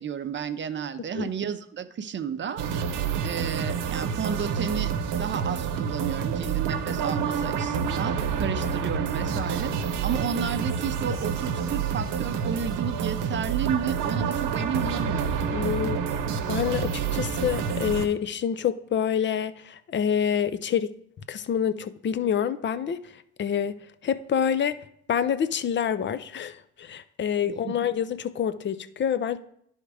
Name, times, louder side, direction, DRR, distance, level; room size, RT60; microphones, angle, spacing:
voice 1, 0.0-2.6 3.2-4.9 5.2-15.4 27.4-27.7, right 7 dB, 35° right, 0.6 m, -32 dB
sound 1, 2.6-18.1, right 6 dB, 90° right, 0.8 m, -28 dB
voice 2, 15.5-16.0 16.5-20.9 21.3-23.0 23.4-24.8 25.1-29.4, left 8 dB, 35° left, 0.5 m, -27 dB
10.5 x 3.6 x 4.8 m
cardioid pair, 95°, 31 cm